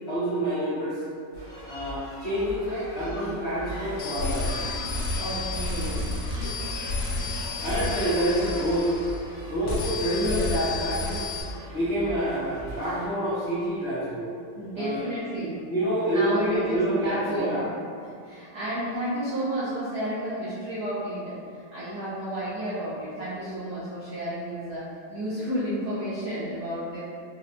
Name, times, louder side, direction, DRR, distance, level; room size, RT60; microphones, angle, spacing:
voice 1, 0.1-1.0 1.7-4.5 7.6-8.9 9.5-11.2 11.7-14.3 14.8-15.1 15.7-17.7, right 1 dB, 65° left, -13 dB, 0.6 m, -27 dB
sound 1, 1.3-13.1, right 1 dB, 50° right, 1.3 m, -39 dB
sound 2, 4.0-9.3 9.6-11.4, left 3 dB, 90° left, 1.7 m, -31 dB
voice 2, 5.2-6.1 10.2-10.5 14.6-15.6 16.1-17.7 18.0-27.0, equal, 70° right, -11 dB, 0.9 m, -31 dB
4.4 x 2.2 x 2.5 m, 2.3 s
omnidirectional pair, 2.4 m